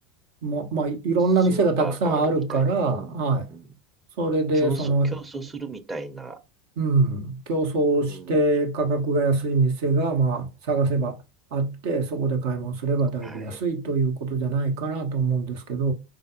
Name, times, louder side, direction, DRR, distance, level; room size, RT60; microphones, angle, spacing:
voice 1, 0.4-3.5 4.2-5.1 6.8-11.2 11.5-15.9, right 3 dB, 60° right, 1.1 m, -24 dB
voice 2, 1.4-3.7 4.5-6.4 8.0-8.5 13.2-13.6, right 3 dB, 15° right, 0.9 m, -37 dB
5.0 x 4.0 x 2.5 m
figure-of-eight pair, 80°, 0 cm